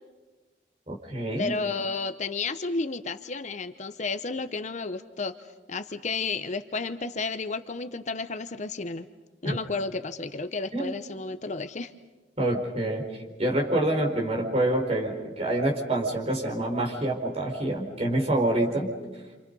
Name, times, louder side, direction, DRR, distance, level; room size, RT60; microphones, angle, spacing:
voice 1, 0.9-1.5 9.4-9.6 10.7-10.9 12.4-13.0 13.4-18.9, right 1 dB, 35° right, -1 dB, 4.5 m, -26 dB
voice 2, 1.4-5.4 5.7-9.1 9.4-11.9 18.5-18.9, left 4 dB, 40° left, 10 dB, 0.7 m, -32 dB
29.5 x 27.0 x 5.4 m, 1.2 s
head